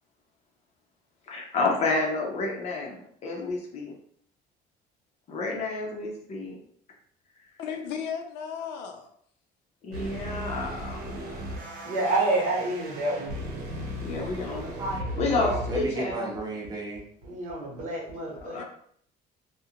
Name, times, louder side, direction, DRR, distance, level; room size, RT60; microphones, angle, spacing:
voice 1, 1.3-4.0 5.3-6.6 9.8-11.3 14.0-14.8 15.2-16.3 18.4-18.6, left 3 dB, 40° left, -1 dB, 0.5 m, -30 dB
voice 2, 7.6-9.1 18.5-18.6, left 7 dB, 90° left, 5 dB, 0.5 m, -35 dB
sound 1, 9.9-15.9, equal, 85° right, 0.8 m, -36 dB
voice 3, 11.8-13.4 17.2-18.6, right 2 dB, 50° right, -4 dB, 1.0 m, -28 dB
voice 4, 14.3-17.0, right 2 dB, 25° right, -4 dB, 0.8 m, -33 dB
2.4 x 2.1 x 2.8 m, 0.63 s
cardioid pair, 155°, 17 cm